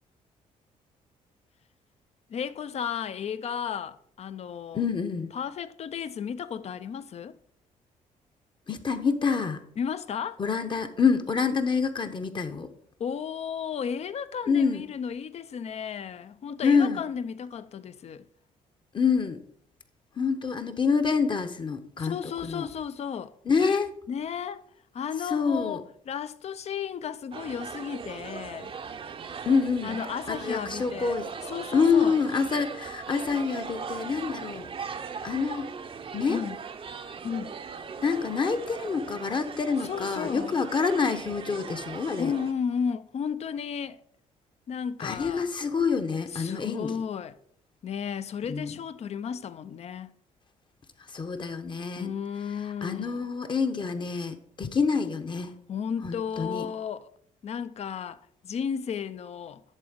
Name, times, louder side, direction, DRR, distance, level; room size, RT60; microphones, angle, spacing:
voice 1, 2.3-4.8 5.3-7.4 9.8-10.4 13.0-18.3 22.0-23.3 24.1-24.6 24.9-28.7 29.8-32.2 36.3-36.6 37.2-37.6 39.8-40.6 42.2-44.0 44.7-45.5 46.3-47.4 47.8-50.1 51.9-53.2 55.7-57.1 57.4-59.6, left 7 dB, 50° left, 0.5 m, -34 dB
voice 2, 4.7-5.3 8.7-9.6 10.4-12.7 14.5-14.8 16.6-17.0 18.9-19.4 20.2-22.7 23.4-23.9 25.3-25.8 29.4-30.0 30.3-31.3 31.7-34.7 35.2-35.7 36.1-36.4 38.0-42.3 45.0-46.9 48.5-48.7 51.1-52.1 52.8-55.5 56.0-56.7, left 5 dB, 35° left, 0.9 m, -27 dB
sound 1, 27.3-42.5, right 6 dB, 40° right, 0.7 m, -39 dB
11.0 x 3.8 x 5.1 m
cardioid pair, 90°, 14 cm